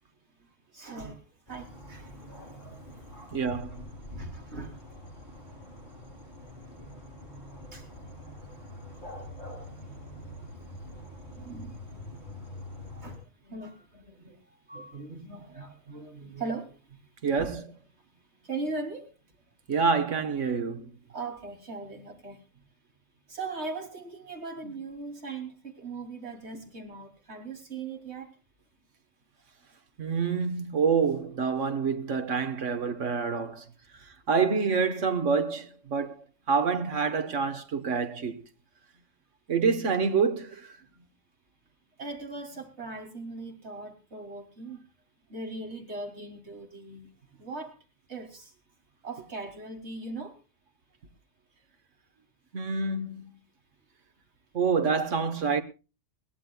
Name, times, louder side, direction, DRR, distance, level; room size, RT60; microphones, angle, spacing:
voice 1, 0.7-1.2 1.5-3.3 4.1-4.8 7.5-7.9 9.7-9.8 11.3-12.1 12.9-14.4 14.7-17.1 17.4-17.5 18.1-19.1 21.1-22.6 23.3-28.3 39.0-39.1 41.0-41.1 42.0-44.8 45.3-47.1 47.3-47.8 48.1-48.5 49.0-50.4, right 3 dB, 65° right, 3.5 m, -40 dB
sound 1, 1.5-13.2, left 1 dB, 40° left, 7.2 m, -44 dB
voice 2, 3.3-3.9 17.2-17.7 19.7-20.9 30.0-33.6 34.3-36.1 36.5-38.4 39.5-40.7 52.5-53.3 54.5-55.6, right 5 dB, 80° right, 1.7 m, -27 dB
22.0 x 17.5 x 2.3 m
omnidirectional pair, 1.3 m